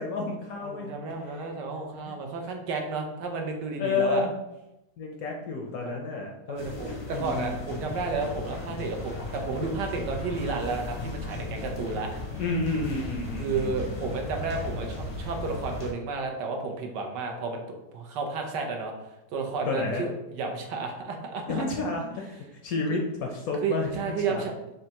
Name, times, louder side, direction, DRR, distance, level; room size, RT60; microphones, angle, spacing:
voice 1, 0.0-0.9 1.3-1.4 2.1-2.2 3.8-4.3 5.0-7.6 12.4-13.8 19.7-20.1 21.5-24.4, left 3 dB, 70° left, 1 dB, 0.9 m, -31 dB
voice 2, 0.6-4.3 6.5-12.1 13.4-17.6 17.9-18.9 19.3-21.6 22.9-23.0 23.6-24.5, right 4 dB, 75° right, 2 dB, 1.3 m, -32 dB
sound 1, 6.5-15.9, left 2 dB, 35° left, 0.4 m, -36 dB
5.3 x 3.4 x 2.8 m, 0.95 s
omnidirectional pair, 1.9 m